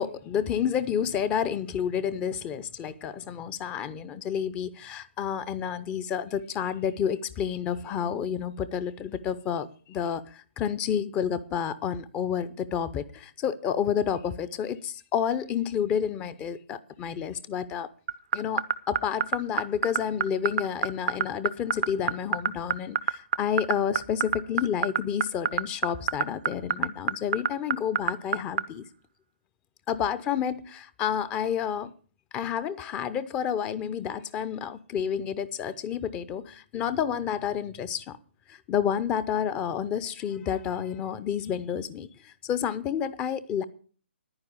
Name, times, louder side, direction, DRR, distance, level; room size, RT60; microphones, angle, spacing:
voice 1, 0.0-17.9 18.3-28.8 29.9-31.9 32.3-38.2 38.5-43.6, left 8 dB, 15° left, 0.6 m, -30 dB
sound 1, 18.1-28.6, right 8 dB, 40° right, 0.5 m, -24 dB
10.5 x 9.7 x 6.8 m
figure-of-eight pair, 135°, 6 cm